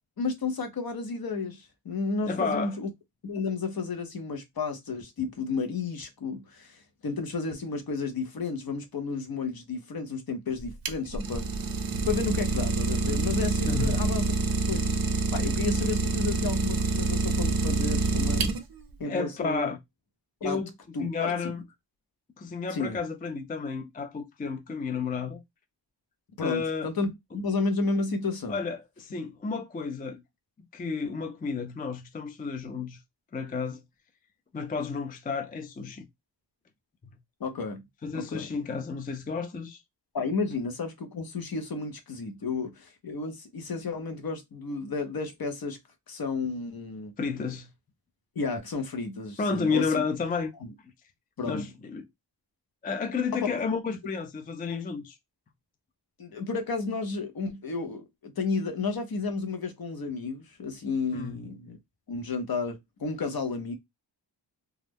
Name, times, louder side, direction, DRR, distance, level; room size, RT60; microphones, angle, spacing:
voice 1, 0.2-2.9 3.2-11.4 12.1-14.3 14.7-15.0 15.3-18.5 19.0-19.7 20.4-20.6 20.9-21.5 22.7-23.0 26.4-28.6 37.4-37.8 38.1-38.5 40.1-45.8 46.1-47.1 48.4-49.9 50.6-50.7 51.4-51.7 53.4-53.5 56.2-61.8 62.1-63.7, left 4 dB, 55° left, 0.7 m, -32 dB
voice 2, 2.3-2.8 13.7-14.0 19.1-19.8 20.4-20.7 21.0-21.6 22.4-25.4 26.4-26.9 28.5-30.2 30.7-33.0 33.3-33.8 34.5-36.1 37.0-37.2 38.0-39.8 47.2-47.7 49.4-50.5 51.4-52.1 52.8-55.2 61.1-61.4, left 5 dB, 20° left, 0.3 m, -31 dB
Idling, 10.6-18.9, right 3 dB, 55° right, 0.5 m, -27 dB
2.3 x 2.1 x 3.3 m
wide cardioid pair, 100°, 44 cm